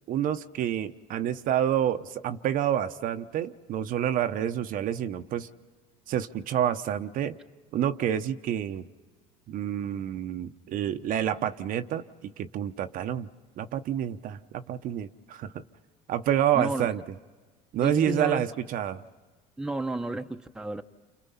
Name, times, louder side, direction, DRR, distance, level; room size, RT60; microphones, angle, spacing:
voice 1, 0.1-5.5 6.1-7.4 7.7-8.9 9.5-13.3 13.6-15.5 16.1-17.0 17.7-19.0, right 10 dB, 55° right, 0.9 m, -28 dB
voice 2, 16.5-16.9 17.8-18.4 19.6-20.8, right 1 dB, 5° right, 0.9 m, -32 dB
29.0 x 27.5 x 5.7 m
supercardioid pair, 90°, 17 cm